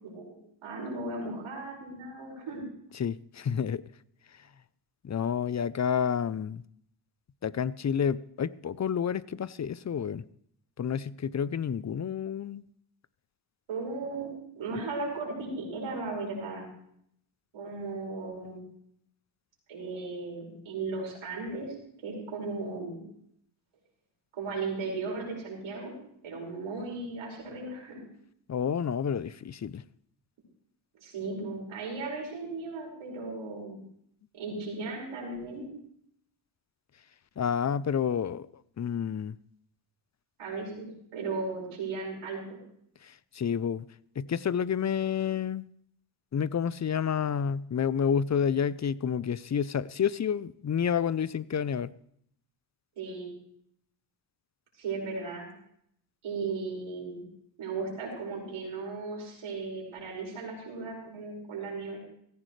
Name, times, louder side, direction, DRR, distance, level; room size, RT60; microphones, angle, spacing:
voice 1, 0.0-2.6 13.7-14.3 14.6-16.7 17.5-18.6 19.7-21.7 22.0-23.0 24.3-25.9 26.2-28.0 31.0-33.8 34.3-35.7 40.4-42.6 53.0-53.3 54.8-55.5 56.2-57.2 57.6-62.0, right 3 dB, 85° right, 5.7 m, -36 dB
voice 2, 3.0-3.8 5.0-6.6 7.4-10.2 10.8-12.7 28.5-29.8 37.4-38.5 38.8-39.4 43.0-43.9 44.2-45.6 46.3-51.9, left 7 dB, 35° left, 0.6 m, -29 dB
16.5 x 14.5 x 3.3 m
cardioid pair, 55°, 49 cm